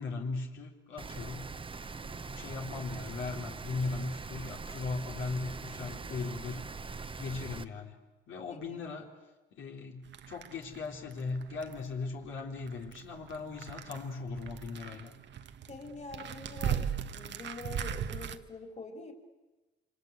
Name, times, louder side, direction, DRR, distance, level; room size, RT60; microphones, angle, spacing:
voice 1, 0.0-1.4 2.0-6.6 7.2-8.0 8.3-9.1 9.5-15.1, left 3 dB, 75° left, 0 dB, 3.3 m, -38 dB
Rain, 1.0-7.6, right 4 dB, 25° right, 1.0 m, -42 dB
sound 1, 10.1-18.4, right 8 dB, 65° right, 1.3 m, -39 dB
voice 2, 15.7-16.9 17.1-19.1, left 3 dB, 35° left, 4 dB, 3.5 m, -45 dB
27.5 x 25.0 x 8.2 m, 1.1 s
cardioid pair, 90°, 20 cm